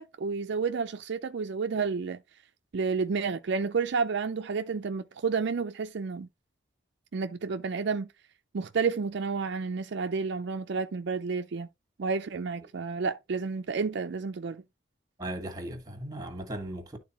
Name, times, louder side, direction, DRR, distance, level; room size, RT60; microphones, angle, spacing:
voice 1, 0.0-2.2 2.7-6.3 7.1-8.1 8.5-11.7 12.0-14.6, right 5 dB, 65° right, 0.5 m, -30 dB
voice 2, 15.2-17.0, right 1 dB, 20° right, 1.6 m, -37 dB
11.5 x 4.0 x 2.9 m
head